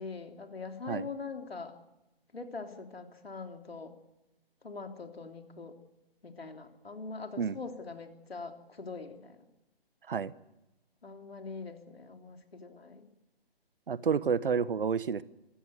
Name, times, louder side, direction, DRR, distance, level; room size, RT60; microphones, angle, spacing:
voice 1, 0.0-1.8 2.3-3.9 4.6-5.8 6.2-9.4 11.0-13.1, left 4 dB, 75° left, 4 dB, 3.5 m, -43 dB
voice 2, 13.9-15.2, right 6 dB, 60° right, 18 dB, 1.1 m, -29 dB
24.5 x 16.0 x 8.0 m, 0.97 s
figure-of-eight pair, 140°, 30 cm